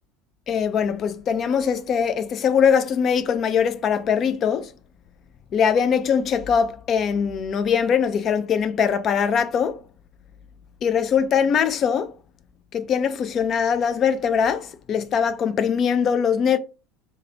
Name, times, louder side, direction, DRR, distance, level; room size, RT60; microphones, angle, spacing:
voice 1, 0.5-4.7 5.5-9.8 10.8-12.1 12.7-16.6, left 7 dB, 40° left, 0.3 m, -22 dB
3.0 x 2.2 x 2.7 m
figure-of-eight pair, 70°, 0 cm